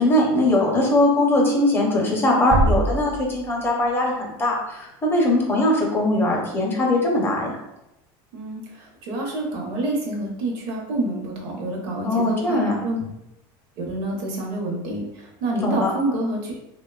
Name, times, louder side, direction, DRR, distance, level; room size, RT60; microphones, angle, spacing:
voice 1, 0.0-7.6 12.0-12.8 15.6-15.9, left 1 dB, 15° left, -1 dB, 0.6 m, -21 dB
sound 1, 2.5-4.1, right 2 dB, 35° right, 0.4 m, -24 dB
voice 2, 8.3-13.0 13.8-16.5, right 2 dB, 75° right, 0 dB, 0.8 m, -28 dB
2.9 x 2.1 x 2.2 m, 0.88 s
cardioid pair, 145°, 12 cm